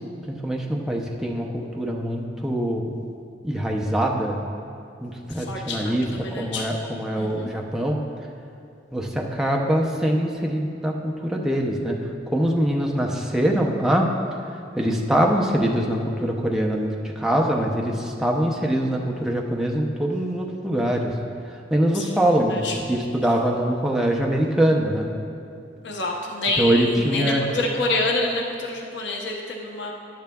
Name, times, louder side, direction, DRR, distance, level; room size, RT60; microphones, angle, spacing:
voice 1, 0.3-3.0 3.4-4.4 5.0-8.0 8.9-12.0 12.3-14.1 14.8-21.1 21.7-25.1 26.6-27.4, right 1 dB, 5° right, -1 dB, 0.5 m, -23 dB
voice 2, 5.2-6.6 7.2-7.5 21.9-22.2 22.5-22.8 25.8-29.9, left 2 dB, 85° left, 0 dB, 0.9 m, -27 dB
12.0 x 10.5 x 2.3 m, 2.5 s
head